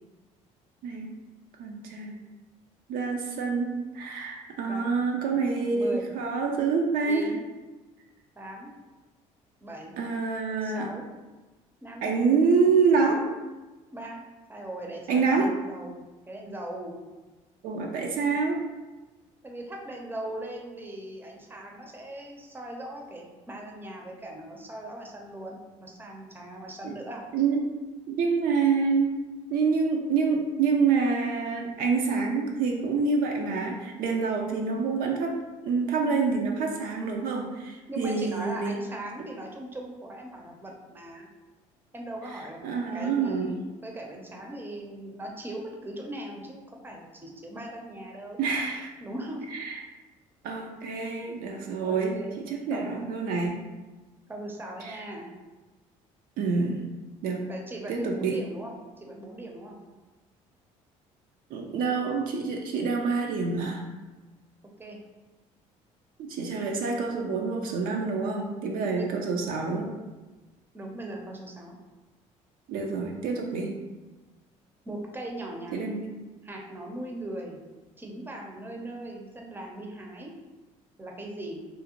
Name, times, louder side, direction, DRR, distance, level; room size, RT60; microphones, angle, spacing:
voice 1, 0.8-1.2 1.6-2.1 2.9-7.3 10.0-10.9 12.0-13.2 15.1-15.5 17.6-18.6 26.8-26.9 27.3-27.6 28.1-29.2 29.5-35.4 35.6-38.7 42.3-43.6 48.4-48.9 49.5-49.7 50.4-53.6 54.8-55.0 56.4-56.9 57.2-57.5 57.9-58.4 61.5-63.8 66.2-69.9 72.7-73.7 75.7-76.1, right 4 dB, 65° right, 1 dB, 0.4 m, -27 dB
voice 2, 4.6-6.1 7.1-7.4 8.4-8.7 9.6-10.0 10.6-11.1 11.8-12.1 12.9-13.2 13.9-14.2 14.5-17.0 19.4-27.3 37.9-41.3 41.9-42.6 42.9-48.4 49.0-49.5 51.8-52.4 52.7-53.0 54.3-55.3 57.5-59.8 64.8-65.0 69.0-69.1 70.7-71.8 74.9-76.0 76.4-77.6 78.0-80.3 81.0-81.6, right 1 dB, 15° right, 0 dB, 0.6 m, -39 dB
2.5 x 2.0 x 2.9 m, 1.2 s
hypercardioid pair, 65°, 16 cm